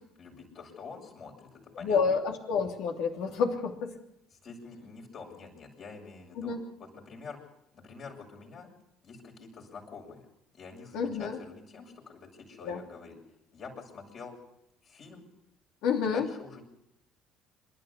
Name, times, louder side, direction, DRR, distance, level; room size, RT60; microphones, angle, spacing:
voice 1, 0.2-2.0 4.3-7.4 7.7-8.7 9.0-10.2 10.5-13.1 13.5-14.3 14.8-15.2 16.0-16.6, left 4 dB, 50° left, -1 dB, 7.0 m, -47 dB
voice 2, 1.8-3.9 6.4-6.6 10.9-11.4 12.6-12.8 15.8-16.3, left 5 dB, 70° left, 3 dB, 2.9 m, -29 dB
26.5 x 12.0 x 8.3 m, 0.81 s
hypercardioid pair, 60°, 0 cm